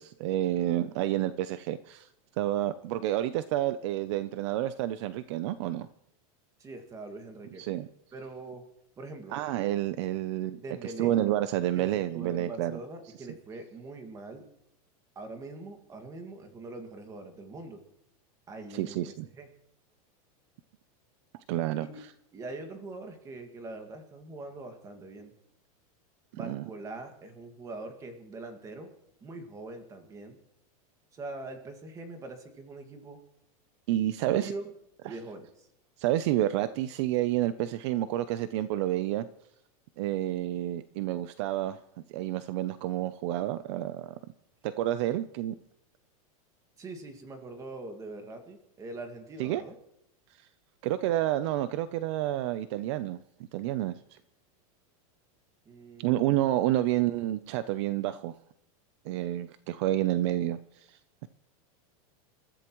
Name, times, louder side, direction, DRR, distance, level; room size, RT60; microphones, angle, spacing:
voice 1, 0.0-2.1 2.4-5.9 7.6-7.9 9.3-12.8 18.7-19.3 21.5-22.1 26.3-26.7 33.9-34.5 35.0-35.1 36.0-39.3 40.0-41.8 42.1-44.1 44.6-45.6 49.4-49.6 50.4-50.5 50.8-53.2 53.5-54.2 56.0-58.3 59.0-61.3, right 13 dB, 50° right, 13 dB, 0.6 m, -29 dB
voice 2, 6.6-7.6 8.1-8.6 9.0-9.4 10.6-11.2 11.8-14.5 15.2-17.8 18.5-19.5 21.8-22.0 22.3-25.3 26.3-28.9 29.2-30.4 31.1-33.2 34.2-34.7 35.1-35.7 46.8-49.8 55.7-56.4, right 2 dB, 15° right, 6 dB, 1.9 m, -43 dB
28.5 x 14.0 x 3.1 m, 0.77 s
supercardioid pair, 165°, 19 cm